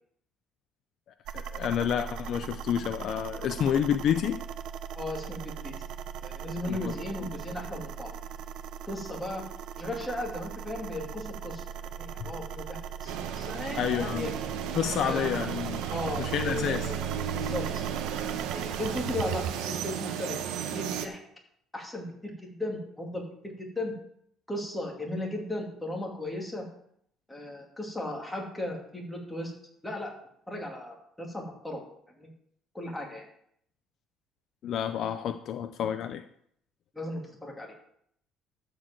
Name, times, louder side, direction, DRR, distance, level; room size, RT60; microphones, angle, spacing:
sound 1, 1.2-19.5, right 8 dB, 65° right, 0.6 m, -39 dB
voice 1, 1.3-4.4 6.7-6.9 7.2-7.3 12.2-12.3 13.8-14.3 14.7-16.9 34.6-36.2, left 9 dB, 55° left, 9 dB, 0.6 m, -29 dB
voice 2, 4.9-5.7 6.2-8.1 8.9-9.4 9.8-11.6 11.9-14.3 15.0-15.5 15.9-17.9 18.5-20.4 20.7-21.2 21.7-24.0 24.5-26.7 27.3-29.5 29.8-30.1 30.5-31.8 32.2-32.3 32.7-33.3 36.9-37.7, left 1 dB, 5° left, -1 dB, 2.6 m, -36 dB
sound 2, 13.1-21.1, right 9 dB, 90° right, 1.2 m, -34 dB
12.5 x 4.7 x 7.7 m, 0.69 s
cardioid pair, 145°, 0 cm